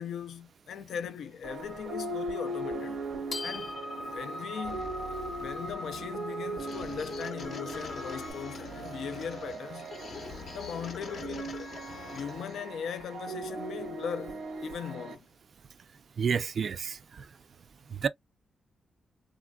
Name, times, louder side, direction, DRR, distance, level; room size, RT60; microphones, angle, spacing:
voice 1, 0.0-3.0 3.4-3.7 4.1-4.9 5.4-9.9 10.5-11.5 12.1-15.3, left 7 dB, 85° left, 0.4 m, -39 dB
sound 1, 1.4-15.2, right 2 dB, 85° right, 0.9 m, -39 dB
sound 2, 1.6-8.3, left 1 dB, 30° left, 0.8 m, -42 dB
sound 3, 4.6-12.6, left 5 dB, 65° left, 0.8 m, -44 dB
voice 2, 16.2-17.0 18.0-18.1, right 6 dB, 55° right, 0.4 m, -28 dB
3.3 x 2.4 x 2.2 m
cardioid pair, 115°, 0 cm